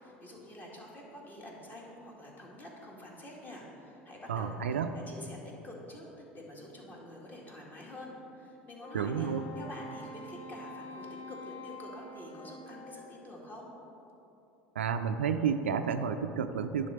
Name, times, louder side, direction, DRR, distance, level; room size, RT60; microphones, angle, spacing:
voice 1, 0.0-5.4 5.6-13.7, left 1 dB, 30° left, -2 dB, 2.0 m, -47 dB
voice 2, 4.3-4.9 8.9-9.4 14.8-16.9, right 7 dB, 80° right, 8 dB, 0.4 m, -31 dB
Wind instrument woodwind instrument, 8.8-13.4, left 1 dB, 45° left, 0.9 m, -46 dB
10.5 x 3.8 x 6.4 m, 3.0 s
figure-of-eight pair, 70°, 6 cm